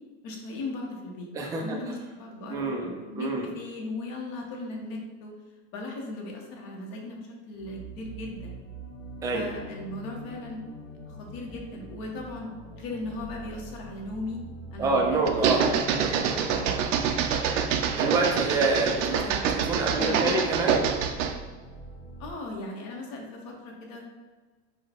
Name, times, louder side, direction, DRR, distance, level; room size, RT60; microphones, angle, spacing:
voice 1, 0.2-1.3 1.6-5.3 5.7-7.2 7.5-8.5 9.3-10.6 11.1-12.5 12.7-14.4 14.7-15.5 15.8-16.8 19.1-19.6 20.0-20.4 22.2-24.0, left 2 dB, 50° left, 0 dB, 1.1 m, -37 dB
voice 2, 1.3-1.8 2.5-3.4 9.2-9.5 14.8-15.7 17.9-19.2 19.5-20.8, right 3 dB, 10° right, 0 dB, 0.3 m, -26 dB
sound 1, 7.5-22.3, right 2 dB, 30° left, 1.4 m, -44 dB
sound 2, 15.3-21.4, right 7 dB, 90° right, 0.6 m, -26 dB
4.8 x 2.2 x 4.3 m, 1.3 s
supercardioid pair, 150°, 36 cm